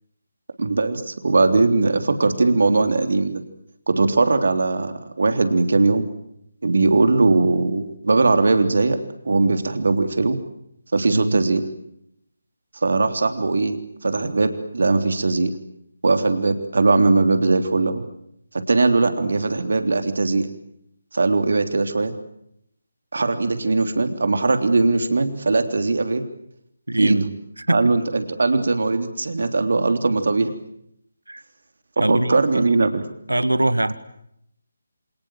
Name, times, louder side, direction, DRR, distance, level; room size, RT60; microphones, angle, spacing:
voice 1, 0.6-3.4 3.9-6.0 6.6-9.0 9.2-10.4 10.9-11.6 12.8-13.8 14.0-15.5 16.0-18.0 18.7-20.5 21.1-22.1 23.1-26.2 27.0-27.3 27.7-30.5 32.0-33.0, right 3 dB, 55° right, 7 dB, 3.4 m, -20 dB
voice 2, 26.9-27.2 27.6-27.9 31.3-31.4 32.0-32.6 33.3-33.9, right 1 dB, 75° right, 14 dB, 2.0 m, -22 dB
28.5 x 27.5 x 7.6 m, 0.77 s
figure-of-eight pair, 150°, 0 cm